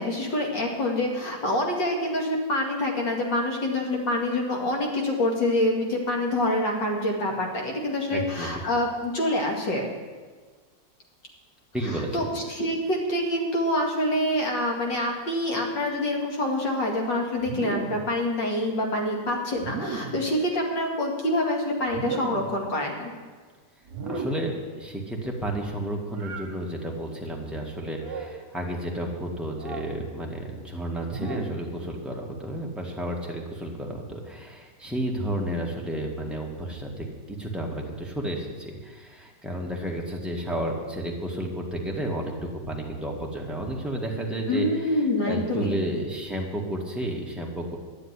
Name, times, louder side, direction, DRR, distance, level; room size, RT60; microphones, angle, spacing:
voice 1, 0.0-9.9 11.9-23.1 44.5-45.8, left 1 dB, 75° left, 0 dB, 2.9 m, -26 dB
voice 2, 8.1-8.5 11.7-12.3 24.1-44.7 45.2-47.8, right 1 dB, ahead, -1 dB, 1.7 m, -32 dB
sound 1, 17.4-18.1 19.6-20.3 21.9-22.6 23.9-24.6 26.2-26.5 27.9-28.4 29.6-29.9 31.0-31.7, right 4 dB, 65° right, 1.9 m, -35 dB
11.5 x 7.6 x 9.8 m, 1.4 s
omnidirectional pair, 2.0 m